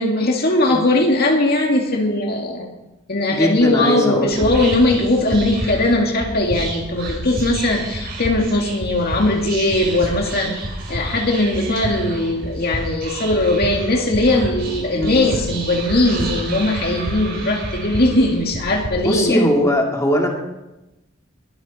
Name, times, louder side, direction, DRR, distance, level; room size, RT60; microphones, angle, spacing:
voice 1, 0.0-2.7 3.1-10.5 10.9-19.5, left 2 dB, 55° left, 1 dB, 2.2 m, -19 dB
voice 2, 3.3-4.4 14.9-15.2 19.0-20.3, equal, 15° left, 0 dB, 2.6 m, -19 dB
Whispering, 4.2-18.9, right 1 dB, 55° right, 5.1 m, -29 dB
22.0 x 12.0 x 4.3 m, 0.98 s
head